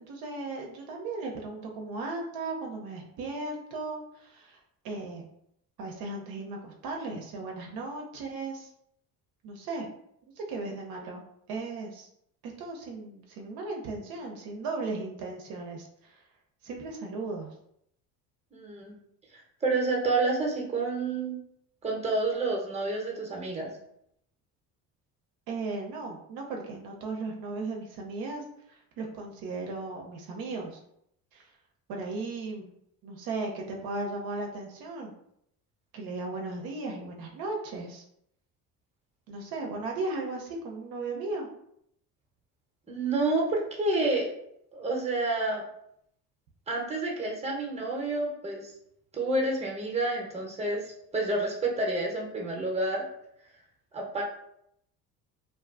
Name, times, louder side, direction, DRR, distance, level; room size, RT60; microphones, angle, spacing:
voice 1, 0.0-4.6 4.8-5.3 5.8-8.7 9.4-9.9 10.4-11.2 11.5-12.1 12.4-16.2 16.6-17.5 25.5-30.8 31.3-31.4 31.9-32.7 33.0-35.1 35.9-38.0 39.3-41.5, right 3 dB, 65° right, 1 dB, 0.6 m, -36 dB
voice 2, 18.5-19.0 19.3-21.4 21.8-23.7 42.9-44.3 44.7-45.6 46.7-48.7 49.1-53.0 53.9-54.2, right 2 dB, 15° right, -1 dB, 0.8 m, -29 dB
2.5 x 2.3 x 2.4 m, 0.73 s
supercardioid pair, 75°, 40 cm